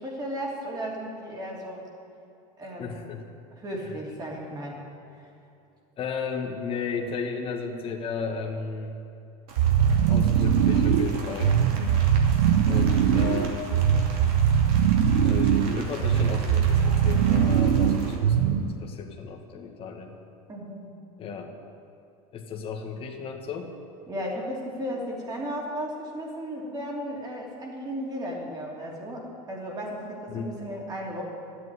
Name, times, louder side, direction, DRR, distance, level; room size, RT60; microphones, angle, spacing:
voice 1, 0.0-1.9 2.6-3.0 3.5-4.9 5.1-5.2 20.5-21.0 24.1-31.2, equal, 20° right, -2 dB, 3.0 m, -35 dB
voice 2, 2.8-3.2 6.0-8.9 10.1-11.6 12.6-13.9 15.2-20.2 21.2-21.5 22.3-23.7 30.3-30.5, left 5 dB, 30° left, 2 dB, 1.5 m, -34 dB
Rain, 9.5-18.1, right 3 dB, 50° right, 2.6 m, -41 dB
sound 1, 9.6-18.8, right 8 dB, 85° right, 0.9 m, -21 dB
12.5 x 8.2 x 9.7 m, 2.8 s
supercardioid pair, 145°, 19 cm